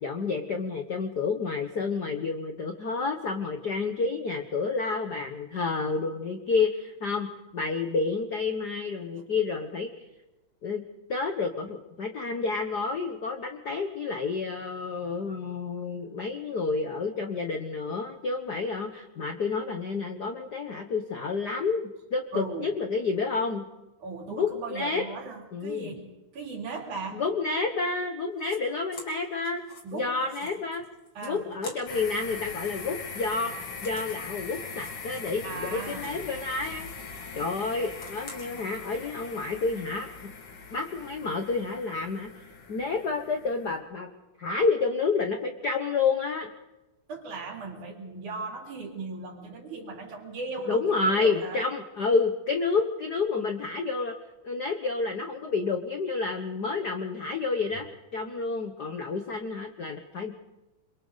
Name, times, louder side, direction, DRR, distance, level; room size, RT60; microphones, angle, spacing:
voice 1, 0.0-9.9 10.6-10.8 11.1-23.6 24.3-25.0 25.5-25.9 27.1-29.6 29.9-30.8 31.2-37.0 37.3-40.1 40.7-42.3 42.7-44.1 44.4-46.5 50.7-54.2 54.4-57.9 58.1-60.3, left 4 dB, 65° left, 5 dB, 1.0 m, -29 dB
voice 2, 22.3-22.7 24.0-27.2 29.8-30.2 30.4-30.5 31.2-31.6 35.4-36.2 47.1-51.6, right 3 dB, 75° right, 0 dB, 4.6 m, -38 dB
sound 1, 28.3-28.6 28.9-32.1 32.4-36.3 36.5-38.6, left 3 dB, 40° left, 3.3 m, -49 dB
sound 2, 31.9-43.8, left 4 dB, 90° left, 3.9 m, -41 dB
29.5 x 23.0 x 4.0 m, 1.0 s
omnidirectional pair, 3.5 m